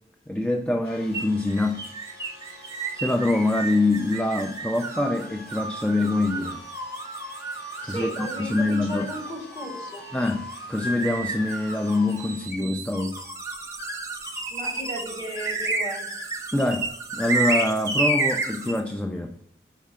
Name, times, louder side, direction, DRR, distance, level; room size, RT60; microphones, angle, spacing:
voice 1, 0.3-1.8 2.9-6.6 7.9-9.1 10.1-13.2 16.5-19.4, left 2 dB, 5° left, 5 dB, 0.3 m, -25 dB
sound 1, 0.8-12.5, left 2 dB, 65° left, 1.0 m, -48 dB
sound 2, 1.1-18.8, right 3 dB, 15° right, 0.9 m, -32 dB
voice 2, 7.8-10.1 14.5-16.1, equal, 25° left, -3 dB, 2.7 m, -35 dB
5.4 x 5.0 x 4.9 m, 0.70 s
head